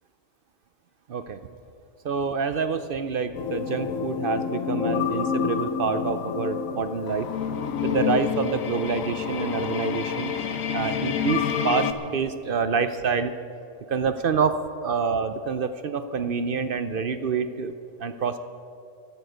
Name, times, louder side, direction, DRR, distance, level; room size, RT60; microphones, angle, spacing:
voice 1, 2.0-7.3 7.8-10.3 10.7-13.3 13.9-17.7 18.0-18.4, right 5 dB, 55° right, 11 dB, 0.6 m, -27 dB
sound 1, 3.3-11.9, left 7 dB, 80° left, 1.3 m, -28 dB
12.5 x 12.0 x 8.0 m, 2.5 s
omnidirectional pair, 1.4 m